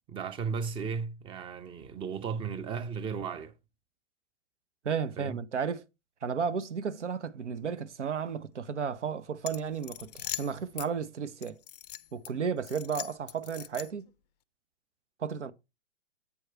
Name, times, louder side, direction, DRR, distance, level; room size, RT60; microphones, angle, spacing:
voice 1, 0.1-3.5 5.2-5.4, right 6 dB, 15° right, 0.7 m, -35 dB
voice 2, 4.8-5.8 6.2-11.6 12.1-14.1 15.2-15.5, right 6 dB, 75° right, 0.9 m, -33 dB
sound 1, 9.4-10.9 11.4-12.3 12.6-14.1, left 14 dB, 35° left, 0.4 m, -41 dB
8.6 x 4.7 x 4.5 m
figure-of-eight pair, 120°, 36 cm